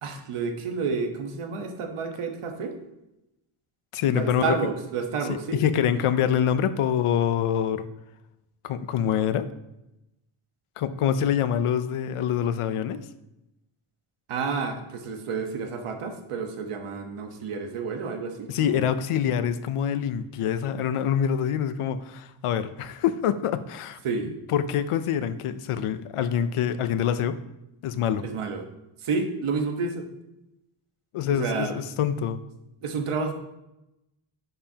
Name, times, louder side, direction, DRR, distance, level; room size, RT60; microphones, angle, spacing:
voice 1, 0.0-2.8 4.1-5.6 14.3-18.9 24.0-24.3 28.2-28.6 29.0-30.1 31.3-31.7 32.8-33.3, right 4 dB, 80° right, 4 dB, 1.3 m, -30 dB
voice 2, 3.9-4.6 5.3-7.8 8.6-9.5 10.8-13.0 18.5-24.0 24.5-27.4 27.8-28.2 31.1-32.4, left 9 dB, 85° left, 11 dB, 0.7 m, -25 dB
11.0 x 6.9 x 2.9 m, 0.91 s
wide cardioid pair, 165°, 50 cm